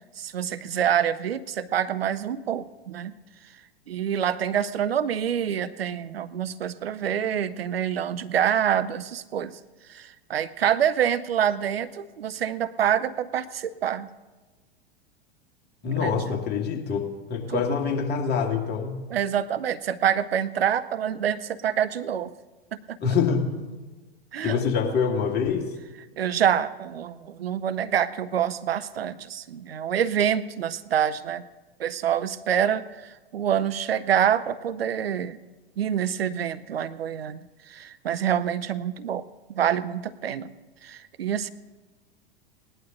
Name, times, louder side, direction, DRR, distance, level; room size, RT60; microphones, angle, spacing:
voice 1, 0.2-3.1 3.9-9.6 9.9-14.1 16.0-16.4 17.5-17.6 19.1-22.3 22.9-23.0 24.3-24.6 26.2-31.4 31.8-35.4 35.8-37.4 37.7-39.2 39.5-40.5 40.8-41.5, right 9 dB, 75° right, 14 dB, 0.7 m, -26 dB
voice 2, 15.8-19.0 23.0-23.6 24.4-25.7, left 6 dB, 35° left, 2 dB, 2.3 m, -25 dB
18.5 x 11.0 x 4.0 m, 1.2 s
figure-of-eight pair, 90°, 31 cm